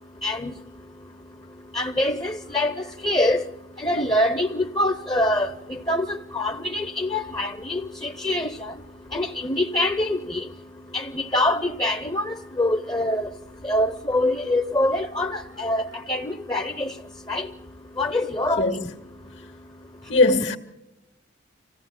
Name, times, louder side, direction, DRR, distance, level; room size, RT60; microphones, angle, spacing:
voice 1, 0.2-0.5 1.7-2.7 3.0-3.4 3.8-8.7 9.1-10.4 10.9-13.3 13.6-16.9 17.3-17.5 18.0-18.7, left 1 dB, 20° left, 0.7 m, -24 dB
voice 2, 20.1-20.6, left 2 dB, 75° left, 2.0 m, -19 dB
26.5 x 16.0 x 7.4 m
head